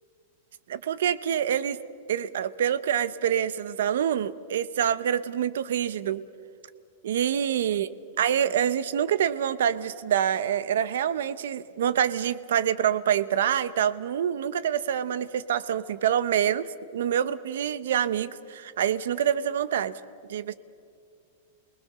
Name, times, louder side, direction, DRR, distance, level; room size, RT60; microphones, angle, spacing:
voice 1, 0.7-1.8 2.1-6.2 7.0-20.0 20.3-20.5, right 9 dB, 75° right, 15 dB, 0.9 m, -26 dB
29.5 x 20.0 x 6.8 m, 2.2 s
supercardioid pair, 170°, 0 cm